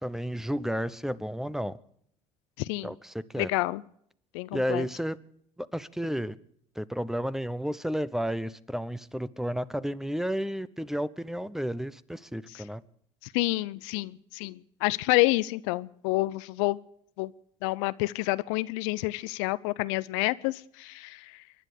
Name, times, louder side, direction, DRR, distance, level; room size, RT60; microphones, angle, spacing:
voice 1, 0.0-1.7 2.8-3.5 4.5-5.2 5.6-6.4 6.8-12.8, equal, 5° right, 17 dB, 0.9 m, -32 dB
voice 2, 2.6-2.9 3.4-3.8 4.3-4.8 12.5-12.6 13.3-16.8 17.2-17.3 17.6-21.2, left 21 dB, 80° left, 17 dB, 0.5 m, -28 dB
24.5 x 10.5 x 5.0 m, 0.67 s
supercardioid pair, 80°, 16 cm